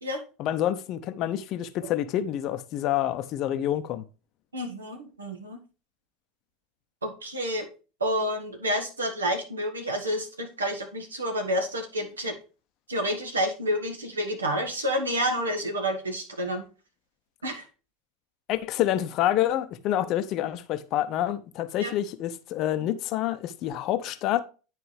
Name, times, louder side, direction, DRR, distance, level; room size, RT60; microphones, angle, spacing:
voice 1, 0.4-4.0 18.5-24.4, left 12 dB, 45° left, 0.6 m, -27 dB
voice 2, 4.5-5.6 7.0-7.7 8.0-12.3 12.9-16.7 17.4-17.6 21.8-21.9, equal, 80° right, 1.6 m, -29 dB
9.8 x 4.6 x 3.2 m
figure-of-eight pair, 75°, 0 cm